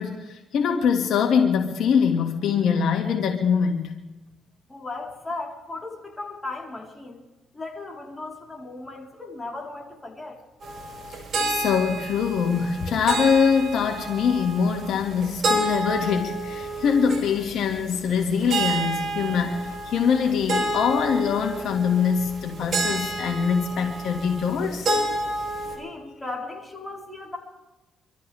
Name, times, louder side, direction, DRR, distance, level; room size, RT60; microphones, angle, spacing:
voice 1, 0.0-3.9 11.5-24.9, left 6 dB, 75° left, 2 dB, 2.2 m, -23 dB
voice 2, 4.7-7.2 7.5-10.4 25.8-27.4, left 2 dB, 15° left, -2 dB, 4.2 m, -36 dB
sound 1, 10.6-25.8, right 2 dB, 55° right, 6.4 m, -30 dB
25.5 x 14.0 x 3.6 m, 1.1 s
cardioid pair, 90°, 0 cm